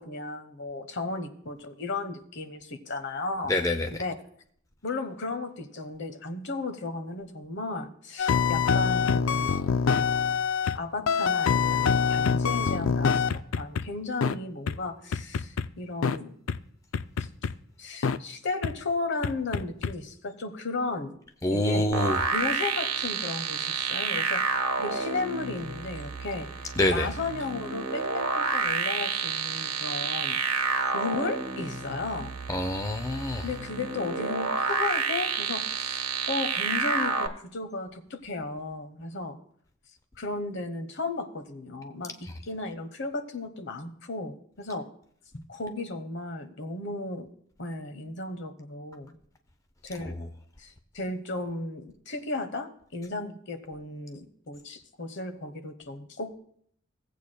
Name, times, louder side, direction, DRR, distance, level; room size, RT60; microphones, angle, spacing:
voice 1, 0.0-3.6 3.9-4.1 4.8-9.5 10.7-16.3 17.8-21.1 21.5-22.0 22.3-26.5 26.9-30.4 30.9-32.3 33.4-39.4 40.2-44.9 45.3-47.3 47.6-49.2 49.8-50.2 50.6-56.4, left 3 dB, 60° left, 1.0 m, -35 dB
voice 2, 3.5-3.9 21.4-22.2 26.8-27.1 32.5-33.4, left 1 dB, 15° left, 0.5 m, -26 dB
sound 1, 8.2-10.8 11.1-13.8 14.2-14.3 14.7-14.8 15.1-15.7 16.0-16.2 16.5-16.6 16.9-17.5 18.0-18.2 18.6-18.7 19.2-19.9, left 6 dB, 75° left, 0.4 m, -25 dB
sound 2, 21.9-37.3, right 5 dB, 85° right, 1.1 m, -29 dB
17.5 x 8.2 x 2.2 m
head